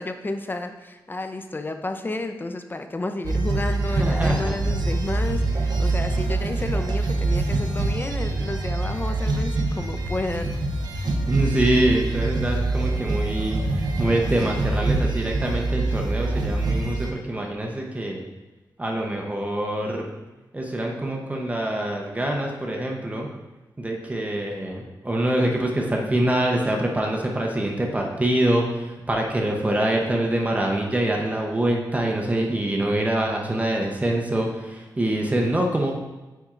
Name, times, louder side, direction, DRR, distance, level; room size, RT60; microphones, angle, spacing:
voice 1, 0.0-10.5, left 2 dB, 25° left, 7 dB, 0.5 m, -31 dB
sound 1, 3.2-17.1, right 2 dB, 70° right, 0.7 m, -25 dB
voice 2, 3.9-4.6 11.3-18.2 18.8-20.1 20.5-23.3 23.8-35.9, right 1 dB, 20° right, 0 dB, 0.8 m, -25 dB
8.9 x 4.2 x 2.5 m, 1.1 s
cardioid pair, 85°, 7 cm